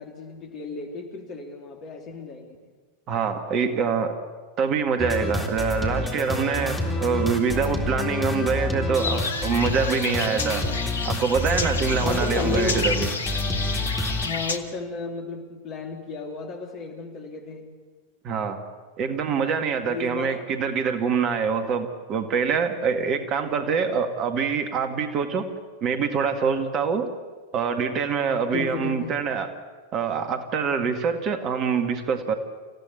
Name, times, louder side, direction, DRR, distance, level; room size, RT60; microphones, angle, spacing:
voice 1, 0.0-2.6 12.0-12.9 14.2-17.7 19.8-20.4 28.5-29.2, left 4 dB, 35° left, 4 dB, 3.3 m, -33 dB
voice 2, 3.1-4.1 4.6-10.6 11.0-13.1 18.2-18.6 19.0-25.5 25.8-27.1 27.5-29.5 29.9-32.3, right 6 dB, 35° right, 7 dB, 2.0 m, -25 dB
sound 1, 5.0-14.3, left 2 dB, 10° left, 3.7 m, -28 dB
sound 2, 8.9-14.6, left 4 dB, 70° left, 1.4 m, -31 dB
27.0 x 16.0 x 8.7 m, 1.4 s
figure-of-eight pair, 90°, 0 cm